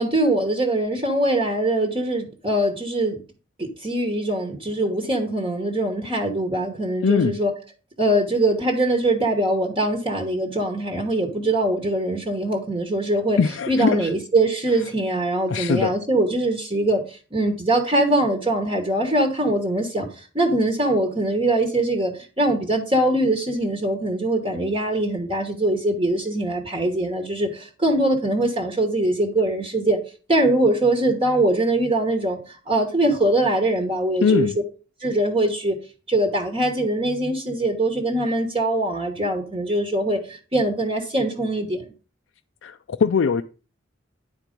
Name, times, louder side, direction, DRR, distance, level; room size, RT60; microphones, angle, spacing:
voice 1, 0.0-3.2 3.6-7.5 8.0-13.4 13.7-30.0 30.3-34.5 35.0-35.8 36.1-41.8, right 1 dB, 25° right, 1.1 m, -22 dB
voice 2, 7.0-7.4 13.4-14.1 15.5-15.9 34.2-34.5 42.6-43.4, left 5 dB, 80° left, 0.4 m, -21 dB
9.8 x 4.5 x 5.1 m
head